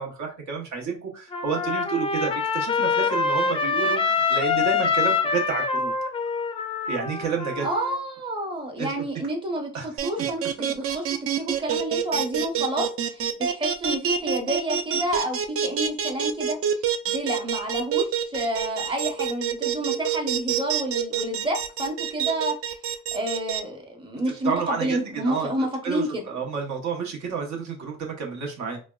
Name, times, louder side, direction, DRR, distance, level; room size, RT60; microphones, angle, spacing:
voice 1, 0.0-5.9 6.9-7.7 8.8-8.9 9.7-9.9 10.2-10.3 24.4-25.0 25.2-25.5 25.8-28.8, right 6 dB, 65° right, 2 dB, 1.0 m, -30 dB
Trumpet, 1.3-8.0, left 5 dB, 20° left, 0.3 m, -25 dB
voice 2, 7.6-10.4 10.7-11.1 11.4-22.6 23.1-26.2, right 1 dB, 15° right, 1 dB, 0.8 m, -29 dB
sound 1, 10.0-23.6, right 8 dB, 50° right, 0.4 m, -26 dB
3.4 x 2.1 x 2.3 m, 0.35 s
cardioid pair, 90°, 30 cm